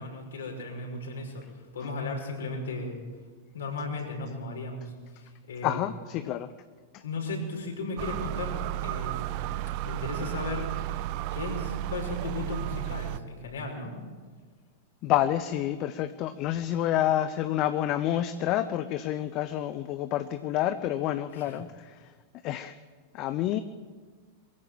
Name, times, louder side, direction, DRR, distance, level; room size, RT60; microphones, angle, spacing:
voice 1, 0.0-3.0 3.5-5.8 7.0-9.5 9.8-11.0 11.3-13.9 21.3-21.6, left 2 dB, 65° left, 1 dB, 5.9 m, -36 dB
voice 2, 5.6-6.5 6.9-7.0 15.0-22.1 22.4-22.7 23.1-23.6, left 12 dB, 40° left, 12 dB, 0.8 m, -28 dB
sound 1, 8.0-13.2, right 14 dB, 45° right, 0.8 m, -33 dB
22.5 x 15.0 x 8.8 m, 1.5 s
figure-of-eight pair, 95°, 0 cm